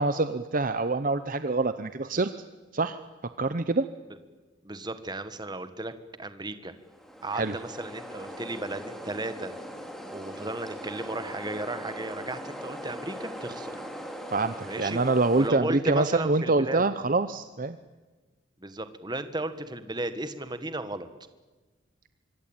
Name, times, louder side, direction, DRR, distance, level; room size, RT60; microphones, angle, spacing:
voice 1, 0.0-2.3 2.7-3.0 3.4-3.9 7.3-7.5 14.3-17.8, right 3 dB, 40° right, 11 dB, 0.8 m, -25 dB
voice 2, 4.6-5.9 6.2-6.7 7.2-9.5 10.1-13.8 14.7-15.0 15.3-16.8 18.6-21.1, right 2 dB, 20° right, 11 dB, 1.6 m, -35 dB
sound 1, 6.8-15.5, equal, ahead, 2.9 m, -40 dB
25.0 x 23.5 x 9.0 m, 1.3 s
head